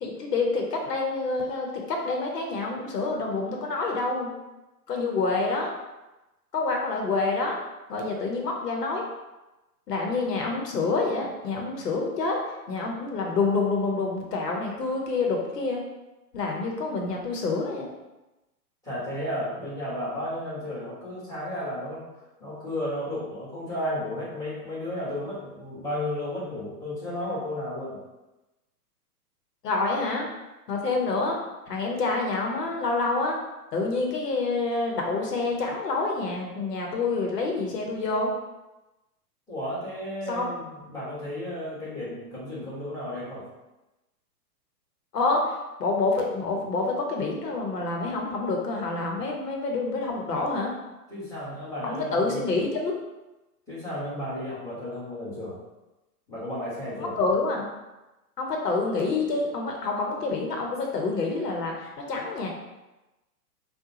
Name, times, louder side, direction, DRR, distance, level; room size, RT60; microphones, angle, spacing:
voice 1, 0.0-4.3 4.9-5.7 6.5-7.6 7.9-9.1 9.9-15.8 16.3-17.9 29.6-30.3 30.7-31.4 31.7-33.4 33.7-38.3 40.3-40.5 45.1-45.5 45.8-50.7 51.8-52.9 57.2-57.6 58.4-62.5, left 3 dB, 80° left, 0 dB, 1.0 m, -27 dB
voice 2, 18.8-22.0 22.4-28.0 39.5-43.4 51.1-52.4 53.7-55.6 56.3-57.1, left 1 dB, 5° left, -10 dB, 1.5 m, -33 dB
3.6 x 2.3 x 2.9 m, 1.0 s
hypercardioid pair, 125°, 48 cm